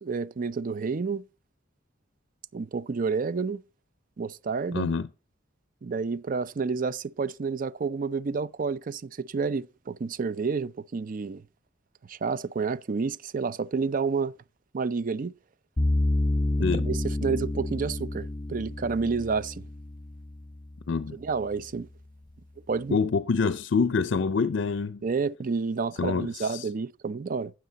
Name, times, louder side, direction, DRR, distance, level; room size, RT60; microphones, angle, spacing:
voice 1, 0.0-1.2 2.5-3.6 4.2-4.9 5.8-11.4 12.1-14.3 14.7-15.3 16.6-19.6 21.1-21.9 22.7-23.0 25.0-27.5, right 4 dB, 45° right, 0.4 m, -30 dB
voice 2, 4.7-5.1 16.6-16.9 20.9-21.2 22.9-25.0 26.0-26.7, left 5 dB, 65° left, 0.5 m, -26 dB
sound 1, 15.8-20.9, left 1 dB, 25° left, 1.2 m, -29 dB
12.0 x 7.8 x 4.0 m
head